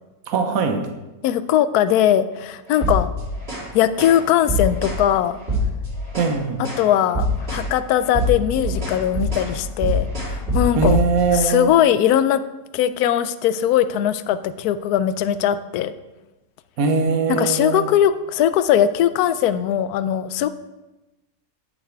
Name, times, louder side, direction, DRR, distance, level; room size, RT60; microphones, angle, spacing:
voice 1, 0.3-0.8 6.1-6.7 10.7-11.7 16.8-17.9, right 5 dB, 65° right, 5 dB, 1.4 m, -21 dB
voice 2, 1.2-3.1 3.7-5.4 6.6-11.0 11.3-12.4 12.7-15.9 17.3-20.5, left 10 dB, 75° left, 13 dB, 1.1 m, -20 dB
sound 1, 2.7-3.7 4.0-4.2 4.5-5.0 5.4-6.4 6.6-6.9 7.1-7.7 8.0-11.3, left 1 dB, 40° right, 3.3 m, -24 dB
10.5 x 7.5 x 4.6 m, 1.1 s
omnidirectional pair, 1.7 m